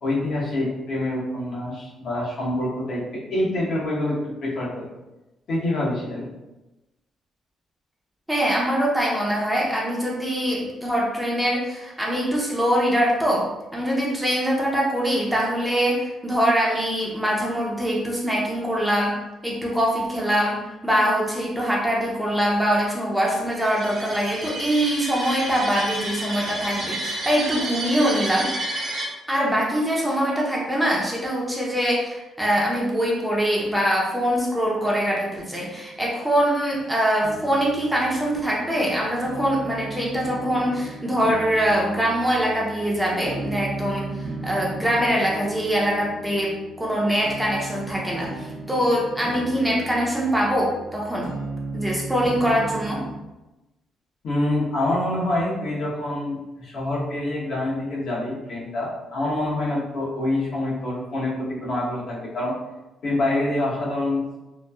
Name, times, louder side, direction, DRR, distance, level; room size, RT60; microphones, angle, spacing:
voice 1, 0.0-4.9 5.5-6.3 54.2-62.5 63.0-64.4, left 1 dB, 65° left, -5 dB, 0.9 m, -26 dB
voice 2, 8.3-13.5 13.7-19.2 19.4-28.5 29.3-44.1 44.4-51.3 51.7-53.0, equal, 5° right, -4 dB, 0.6 m, -23 dB
sound 1, 23.5-29.0, right 1 dB, 60° right, 1.0 m, -30 dB
sound 2, 37.2-53.2, right 2 dB, 85° right, 0.7 m, -36 dB
2.9 x 2.3 x 2.2 m, 1.0 s
cardioid pair, 90°, 0 cm